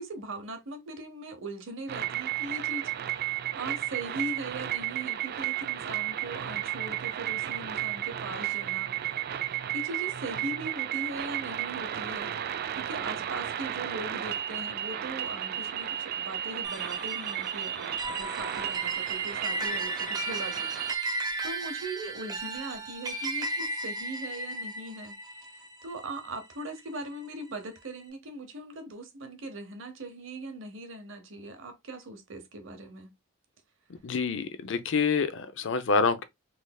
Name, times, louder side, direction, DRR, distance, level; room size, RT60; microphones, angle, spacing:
voice 1, 0.0-8.9 9.5-25.2 25.5-33.1, right 2 dB, 65° right, 0.9 m, -40 dB
sound 1, 1.9-21.0, right 11 dB, 50° right, 0.3 m, -33 dB
sound 2, 16.6-27.3, right 2 dB, 20° right, 0.8 m, -36 dB
voice 2, 33.9-36.2, left 5 dB, 65° left, 0.5 m, -27 dB
3.9 x 3.3 x 2.3 m
head